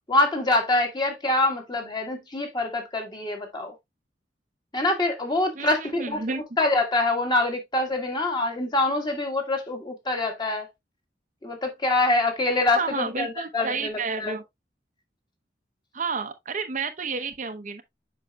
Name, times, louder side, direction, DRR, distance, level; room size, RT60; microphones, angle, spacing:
voice 1, 0.1-3.7 4.7-6.2 6.6-10.7 11.4-14.4, left 2 dB, 25° left, 1.7 m, -25 dB
voice 2, 5.6-6.4 12.7-14.4 15.9-17.8, right 4 dB, 45° right, 0.7 m, -30 dB
7.7 x 5.6 x 2.3 m
head